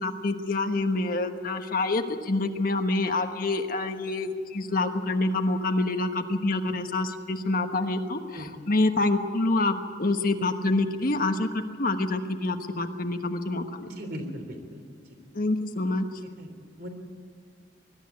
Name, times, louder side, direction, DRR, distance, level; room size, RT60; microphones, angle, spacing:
voice 1, 0.0-13.9 15.3-16.0, left 2 dB, 55° left, 6 dB, 1.2 m, -27 dB
voice 2, 13.8-14.8 16.4-16.5 16.8-16.9, equal, 65° right, 4 dB, 3.5 m, -38 dB
21.0 x 13.0 x 9.4 m, 2.1 s
head